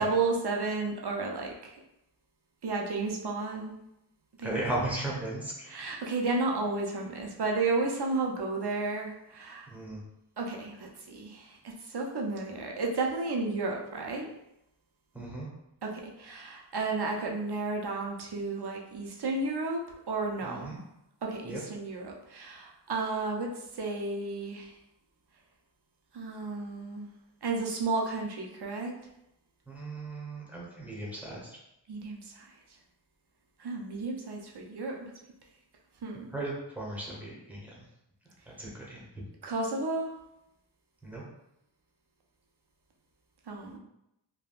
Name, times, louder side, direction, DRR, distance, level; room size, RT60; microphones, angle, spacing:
voice 1, 0.0-1.8 2.6-3.8 4.4-4.7 5.7-9.7 10.4-14.3 15.8-19.8 20.1-20.7 21.2-24.7 26.1-27.1 27.4-28.9 31.9-32.5 33.6-35.1 36.0-36.3 39.4-40.1 43.5-43.8, right 3 dB, 60° right, 0 dB, 0.6 m, -32 dB
voice 2, 4.4-5.9 9.7-10.0 15.1-15.5 20.4-20.8 21.4-21.6 29.7-31.6 36.3-37.9 38.5-39.0 41.0-41.2, right 2 dB, 5° right, -5 dB, 1.0 m, -36 dB
3.5 x 2.2 x 2.3 m, 0.85 s
wide cardioid pair, 45°, 46 cm